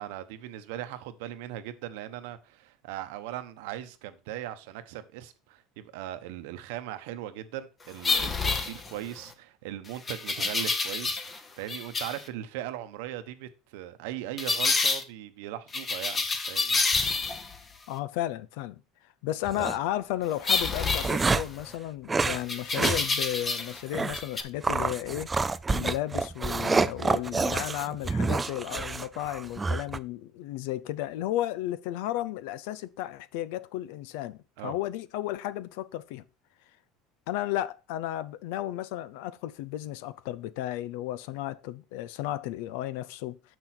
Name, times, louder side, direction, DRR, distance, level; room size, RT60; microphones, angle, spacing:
voice 1, 0.0-16.8 34.6-34.7, right 12 dB, 85° right, 1.0 m, -39 dB
sound 1, 8.0-9.2 10.1-11.4 11.7-12.2 14.4-15.0 15.7-17.6 20.4-21.7 22.5-23.8 24.1-24.4, left 4 dB, 20° left, 1.0 m, -28 dB
voice 2, 17.9-18.8 19.2-25.3 25.7-36.2 37.3-43.4, left 14 dB, 80° left, 0.6 m, -33 dB
sound 2, 19.4-19.8 20.5-21.6 22.1-22.4 22.7-23.0 23.3-23.4 23.9-24.2 24.6-30.0, right 4 dB, 15° right, 0.4 m, -28 dB
7.0 x 6.1 x 4.4 m
cardioid pair, 135°, 0 cm